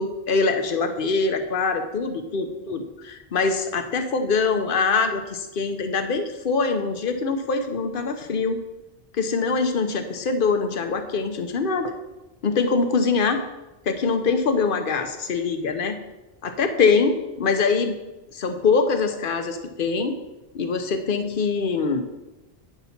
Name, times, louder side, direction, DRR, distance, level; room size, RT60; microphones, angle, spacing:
voice 1, 0.0-8.6 9.1-11.9 12.4-13.4 13.9-16.0 16.4-18.0 18.3-20.2 20.5-22.0, left 4 dB, 60° left, 6 dB, 0.9 m, -23 dB
9.2 x 4.1 x 5.8 m, 1.1 s
omnidirectional pair, 1.1 m